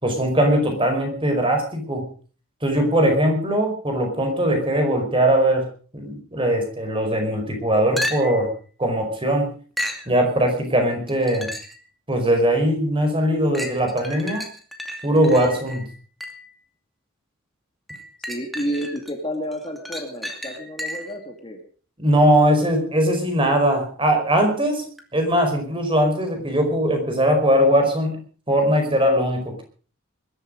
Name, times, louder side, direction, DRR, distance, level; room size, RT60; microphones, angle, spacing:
voice 1, 0.0-2.1 2.6-5.7 5.9-8.5 8.8-9.5 10.1-11.5 12.1-14.5 15.0-15.9 22.0-24.8 25.1-29.6, right 1 dB, 25° right, 5 dB, 5.0 m, -20 dB
sound 1, 8.0-8.5 9.8-10.1 11.1-11.8 12.4-12.5 13.5-16.5 17.9-19.1 19.5-21.2 25.0-25.1, equal, ahead, 2.4 m, -33 dB
voice 2, 18.3-21.6, equal, 25° left, 3 dB, 2.4 m, -30 dB
21.5 x 13.0 x 5.1 m, 0.41 s
head